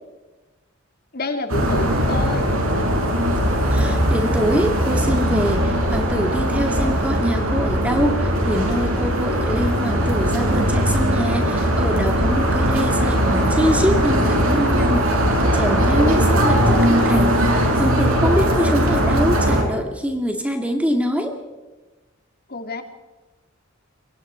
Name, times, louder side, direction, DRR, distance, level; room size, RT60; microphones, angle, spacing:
voice 1, 1.1-2.5 22.5-22.8, left 2 dB, 50° left, 6 dB, 2.8 m, -28 dB
sound 1, 1.5-19.6, equal, 90° right, 6.6 m, -19 dB
voice 2, 3.7-21.4, equal, 5° right, 4 dB, 2.1 m, -24 dB
27.5 x 23.5 x 4.5 m, 1.2 s
head